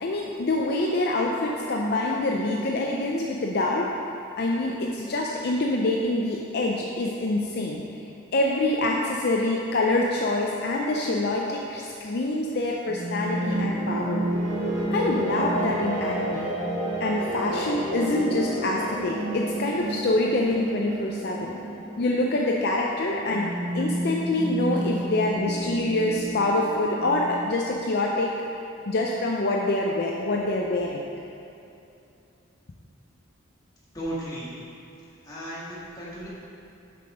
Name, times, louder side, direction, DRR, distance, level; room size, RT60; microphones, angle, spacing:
voice 1, 0.0-3.9 4.4-7.8 8.3-14.2 14.9-16.5 17.0-21.6 22.0-23.5 23.7-28.3 28.9-31.0, left 2 dB, 50° left, -1 dB, 0.5 m, -26 dB
sound 1, 12.9-27.5, right 1 dB, 75° right, 1.6 m, -30 dB
voice 2, 33.9-34.5 35.2-36.3, right 1 dB, 20° left, -9 dB, 1.9 m, -35 dB
6.9 x 6.0 x 5.0 m, 2.8 s
head